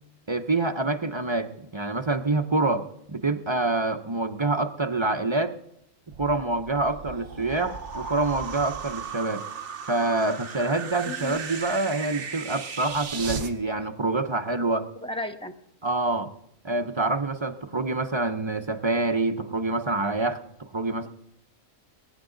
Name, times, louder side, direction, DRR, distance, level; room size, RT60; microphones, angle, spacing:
voice 1, 0.3-5.6 6.2-9.4 9.9-14.9 15.8-16.3 16.6-21.1, right 2 dB, 30° right, 6 dB, 0.5 m, -26 dB
sound 1, 6.1-13.5, right 6 dB, 60° right, 1.3 m, -36 dB
voice 2, 11.0-11.3 15.0-15.5, left 1 dB, 5° left, 6 dB, 0.7 m, -34 dB
22.0 x 9.8 x 3.9 m, 0.77 s
omnidirectional pair, 1.4 m